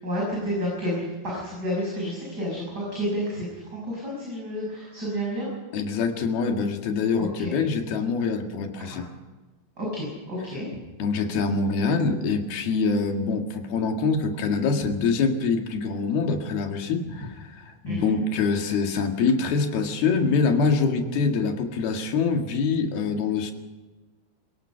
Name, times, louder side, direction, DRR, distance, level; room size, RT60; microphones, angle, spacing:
voice 1, 0.0-5.5 7.2-7.5 8.9-9.0 9.8-10.7 17.8-18.2, equal, 25° right, -4 dB, 7.2 m, -30 dB
voice 2, 5.7-9.1 11.0-23.5, left 4 dB, 75° left, 4 dB, 3.8 m, -25 dB
27.0 x 17.5 x 5.8 m, 1.2 s
omnidirectional pair, 4.4 m